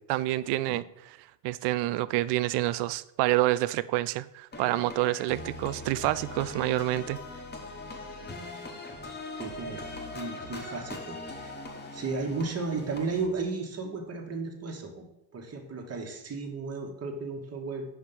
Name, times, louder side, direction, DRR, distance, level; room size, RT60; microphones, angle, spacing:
voice 1, 0.1-1.2 1.4-7.2, right 16 dB, 55° right, 0.5 m, -28 dB
sound 1, 4.5-13.3, left 2 dB, 20° left, 1.4 m, -41 dB
voice 2, 9.4-11.5 11.9-15.1 15.3-17.9, right 4 dB, 30° right, 1.6 m, -34 dB
5.4 x 4.6 x 5.5 m
supercardioid pair, 85°, 49 cm